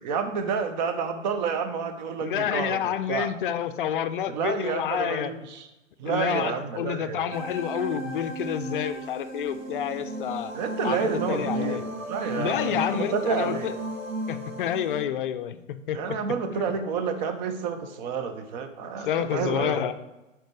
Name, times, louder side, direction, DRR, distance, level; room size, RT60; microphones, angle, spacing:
voice 1, 0.0-3.3 4.3-5.7 6.0-7.3 10.5-13.7 15.9-19.8, right 6 dB, 35° right, 8 dB, 0.8 m, -29 dB
voice 2, 2.2-5.3 6.1-10.5 10.8-11.8 12.3-13.7 14.3-16.0 16.5-16.7 19.0-19.9, left 10 dB, 45° left, 11 dB, 0.5 m, -29 dB
sound 1, 7.3-15.0, right 1 dB, 80° right, 1.5 m, -34 dB
10.5 x 4.5 x 3.3 m, 1.0 s
figure-of-eight pair, 110°, 39 cm